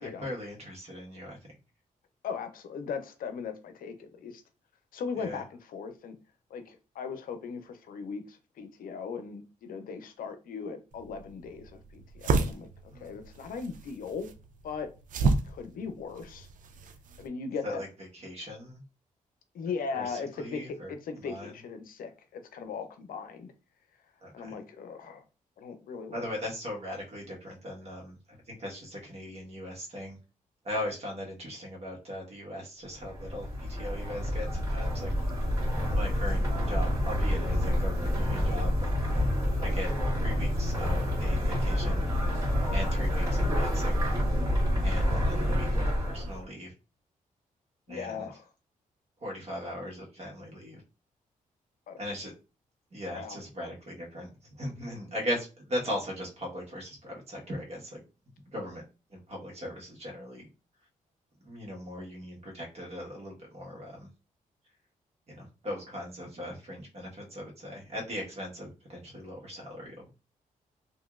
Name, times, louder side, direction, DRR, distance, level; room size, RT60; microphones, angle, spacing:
voice 1, 0.0-1.4 5.2-5.4 12.9-13.1 15.3-15.4 17.6-17.9 18.1-18.8 19.9-20.9 21.2-21.5 24.2-24.5 26.1-30.2 30.6-35.1 35.8-38.9 39.6-39.9 40.2-42.1 42.7-43.9 44.8-46.7 47.9-48.3 49.2-50.8 52.0-52.3 52.9-54.3 54.5-58.0 58.5-58.8 59.1-60.4 61.4-64.1 65.3-70.1, equal, 45° right, -1 dB, 1.2 m, -39 dB
voice 2, 2.2-4.4 4.9-6.2 6.5-14.3 14.6-14.9 15.2-16.5 17.2-17.8 19.5-23.5 24.3-25.2 25.6-26.3 47.9-48.5 51.9-52.0 53.1-53.4, left 5 dB, 80° left, 8 dB, 0.5 m, -38 dB
sound 1, 10.9-17.3, right 4 dB, 65° right, 0.4 m, -32 dB
sound 2, 33.0-46.4, equal, 20° right, 1.7 m, -28 dB
2.9 x 2.6 x 2.3 m, 0.31 s
cardioid pair, 95°, 14 cm